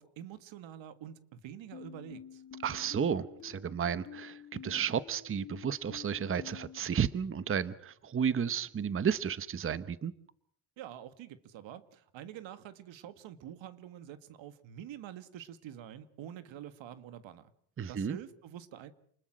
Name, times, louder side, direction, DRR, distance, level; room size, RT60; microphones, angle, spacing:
voice 1, 0.0-2.4 10.8-17.5 17.9-18.9, right 10 dB, 75° right, 13 dB, 1.8 m, -47 dB
sound 1, 1.7-6.8, left 8 dB, 35° left, 4.6 m, -49 dB
voice 2, 2.6-10.1 17.8-18.2, right 7 dB, 25° right, 16 dB, 0.9 m, -32 dB
28.5 x 20.5 x 6.2 m, 0.62 s
cardioid pair, 110°, 47 cm